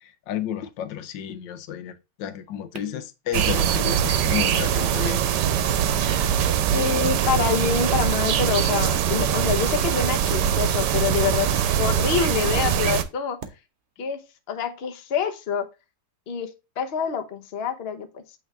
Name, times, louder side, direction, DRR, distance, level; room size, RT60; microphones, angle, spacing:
voice 1, 0.0-5.4, left 10 dB, 85° left, 1.4 m, -32 dB
sound 1, 2.7-2.8 3.7-3.8 4.8-5.3 5.8-6.3 7.2-7.4 8.0-8.4 9.1-9.3 10.2-10.7 11.5-11.6 12.6-12.8 13.4-13.5, right 5 dB, 45° right, 1.0 m, -36 dB
sound 2, 3.3-13.0, right 9 dB, 75° right, 1.3 m, -22 dB
voice 2, 6.7-13.4 14.0-14.2 14.5-15.7 16.3-18.2, left 7 dB, 45° left, 0.9 m, -26 dB
8.5 x 3.5 x 3.3 m
omnidirectional pair, 1.9 m